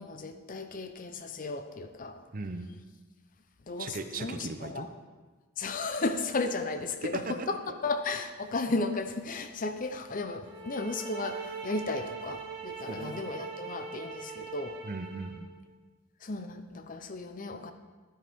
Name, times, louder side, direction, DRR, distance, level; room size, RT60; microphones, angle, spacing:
voice 1, 0.0-2.2 3.7-4.9 5.6-7.6 7.8-14.8 16.2-17.7, left 3 dB, 40° left, 8 dB, 0.6 m, -34 dB
voice 2, 2.3-2.7 3.8-4.9 7.1-7.8 12.9-13.2 14.8-15.5, right 3 dB, 40° right, 8 dB, 0.7 m, -38 dB
sound 1, 10.4-15.4, right 5 dB, 65° right, 2.2 m, -41 dB
12.0 x 10.0 x 3.6 m, 1.4 s
head